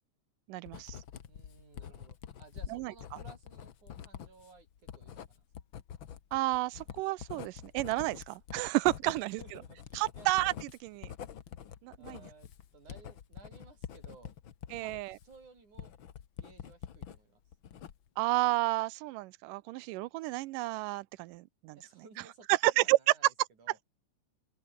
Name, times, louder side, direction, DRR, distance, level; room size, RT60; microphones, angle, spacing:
voice 1, 0.5-1.0 2.7-2.9 6.3-9.4 10.0-11.1 11.8-12.2 14.7-15.2 18.2-21.8 22.5-23.0, right 19 dB, 90° right, 2.3 m, -31 dB
Writing, 0.7-17.2 17.5-18.2, left 9 dB, 50° left, 1.6 m, -46 dB
voice 2, 1.3-4.7 4.9-5.5 9.1-10.3 12.0-14.3 14.8-15.9 16.4-17.4 21.8-23.3 23.6-23.8, right 4 dB, 65° right, 8.1 m, -57 dB
open air
omnidirectional pair, 3.7 m